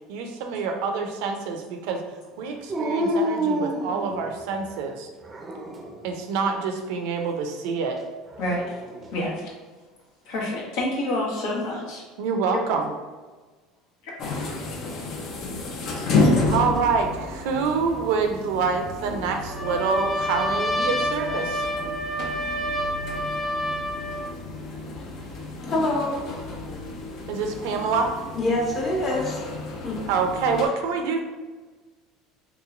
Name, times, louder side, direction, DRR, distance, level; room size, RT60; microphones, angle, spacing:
voice 1, 0.1-2.0 2.4-5.1 6.0-8.0 12.2-12.9 16.4-21.6 27.3-28.1 30.1-31.2, right 5 dB, 75° right, 4 dB, 0.5 m, -26 dB
Dog, 2.7-4.6 5.2-6.0 8.3-9.2, equal, 25° right, 0.5 m, -28 dB
voice 2, 8.4-8.7 9.1-9.5 10.3-12.0 12.5-12.6, left 1 dB, 75° left, -3 dB, 1.1 m, -28 dB
sound 1, 14.2-30.7, left 2 dB, 55° left, 0.6 m, -30 dB
Trumpet, 19.5-24.3, equal, 15° left, 0.6 m, -28 dB
voice 3, 25.7-26.2 28.3-29.4 29.8-30.1, left 1 dB, 35° left, -2 dB, 1.1 m, -25 dB
3.5 x 2.9 x 2.5 m, 1.3 s
supercardioid pair, 105°, 0 cm